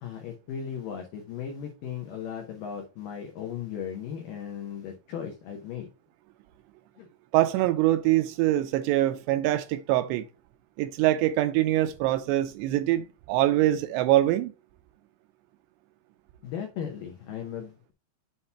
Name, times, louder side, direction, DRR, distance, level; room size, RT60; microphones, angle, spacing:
voice 1, 0.0-5.9 7.0-7.1 16.4-17.9, left 8 dB, 90° left, 1.9 m, -37 dB
voice 2, 7.3-10.3 10.8-14.5, right 14 dB, 85° right, 2.6 m, -24 dB
7.7 x 2.8 x 5.5 m
omnidirectional pair, 5.2 m